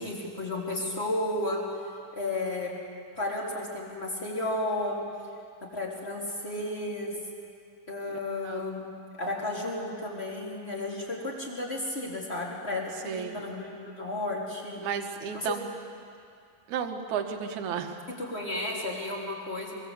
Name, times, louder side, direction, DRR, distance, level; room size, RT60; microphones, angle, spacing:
voice 1, 0.0-1.6 2.1-2.7 3.1-5.0 5.7-7.1 7.9-8.9 9.2-14.8 15.3-15.5 18.1-19.7, left 2 dB, 20° left, -3 dB, 4.1 m, -33 dB
voice 2, 8.1-8.7 13.0-13.3 14.8-15.7 16.7-18.0, right 7 dB, 70° right, 4 dB, 2.7 m, -33 dB
24.5 x 23.0 x 8.4 m, 2.4 s
omnidirectional pair, 3.6 m